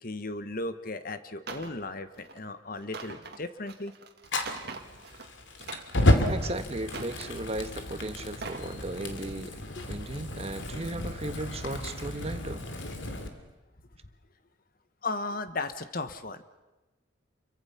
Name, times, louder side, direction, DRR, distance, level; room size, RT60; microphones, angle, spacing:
voice 1, 0.0-3.9 9.4-9.9 15.0-16.4, left 2 dB, 45° left, 11 dB, 1.2 m, -36 dB
sound 1, 1.5-1.8 2.2-2.4 2.8-5.3 5.6-6.4 6.9-7.7 8.2-8.7 9.1-9.3, right 4 dB, 55° right, 2.0 m, -43 dB
Fire, 4.3-13.3, left 1 dB, 75° left, 2.5 m, -31 dB
voice 2, 6.3-9.6 9.9-12.7, right 2 dB, 30° right, 9 dB, 1.3 m, -36 dB
29.0 x 23.5 x 5.8 m, 1.1 s
head